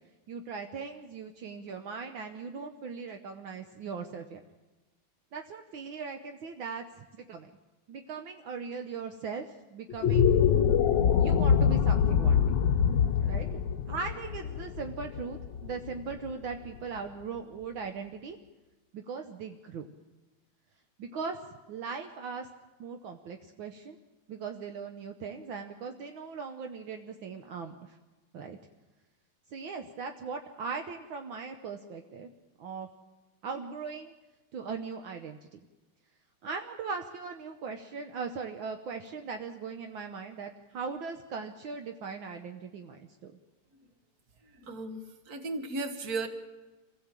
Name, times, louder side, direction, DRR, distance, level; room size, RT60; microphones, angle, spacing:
voice 1, 0.3-4.4 5.3-7.5 7.9-10.3 11.2-12.6 13.2-13.5 13.9-18.4 18.9-19.9 21.0-21.4 21.7-22.5 22.8-24.0 24.3-28.0 28.3-28.6 29.5-32.3 32.6-32.9 33.4-34.1 34.5-35.6 36.4-43.3, right 5 dB, 70° right, 5 dB, 1.7 m, -39 dB
sound 1, 9.9-16.3, left 7 dB, 65° left, 1.4 m, -25 dB
voice 2, 44.6-46.3, right 3 dB, 45° right, 7 dB, 2.0 m, -35 dB
26.5 x 16.5 x 7.5 m, 1.2 s
omnidirectional pair, 2.4 m